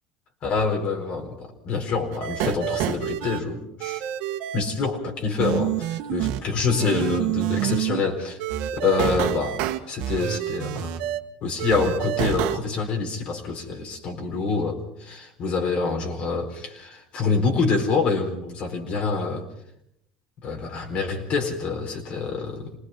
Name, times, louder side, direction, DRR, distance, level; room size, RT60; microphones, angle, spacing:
voice 1, 0.4-4.0 4.5-8.4 8.8-11.0 11.4-19.5 20.4-22.8, left 4 dB, 50° left, 4.3 m, -26 dB
sound 1, 2.1-3.4 3.8-4.6 5.4-6.4 6.7-8.0 8.4-11.2 11.6-12.6, right 12 dB, 70° right, 1.5 m, -27 dB
27.0 x 19.5 x 5.8 m
supercardioid pair, 105°, 3 cm